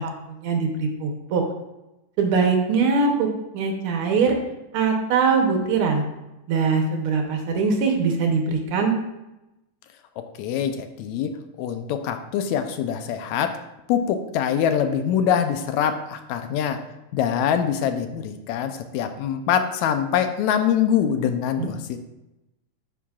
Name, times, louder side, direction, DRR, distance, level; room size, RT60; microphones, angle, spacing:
voice 1, 0.0-1.4 2.2-4.4 4.7-6.0 6.5-8.9 21.6-21.8, right 5 dB, 75° right, 3 dB, 1.2 m, -22 dB
voice 2, 10.4-13.6 13.9-16.8 17.1-22.0, left 8 dB, 80° left, 8 dB, 1.7 m, -24 dB
9.9 x 7.3 x 2.4 m, 0.95 s
omnidirectional pair, 3.6 m